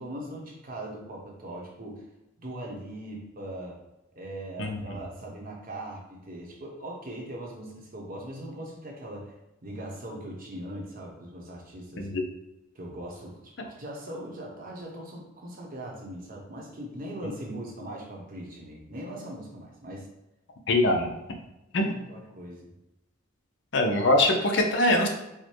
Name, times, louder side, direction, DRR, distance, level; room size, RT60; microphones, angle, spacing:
voice 1, 0.0-2.0 2.4-3.8 4.1-9.3 9.6-12.1 12.7-20.1 21.9-22.8, right 1 dB, 45° right, -1 dB, 1.0 m, -40 dB
voice 2, 4.6-5.0 12.0-12.2 20.7-21.1 21.7-21.9 23.7-25.1, left 1 dB, 60° left, 3 dB, 0.7 m, -23 dB
4.9 x 2.2 x 4.4 m, 0.91 s
head